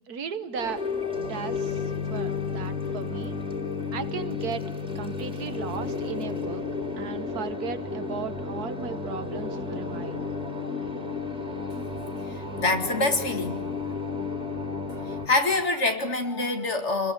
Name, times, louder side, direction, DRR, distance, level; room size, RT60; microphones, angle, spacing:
voice 1, 0.1-0.8 1.2-3.4 3.9-4.6 5.0-6.6 7.0-10.2, right 7 dB, 85° right, 1.8 m, -36 dB
sound 1, 0.5-15.3, left 4 dB, 5° right, 3.2 m, -32 dB
voice 2, 12.3-13.7 14.9-17.1, left 2 dB, 50° left, 2.5 m, -26 dB
28.0 x 21.0 x 9.6 m
omnidirectional pair, 1.6 m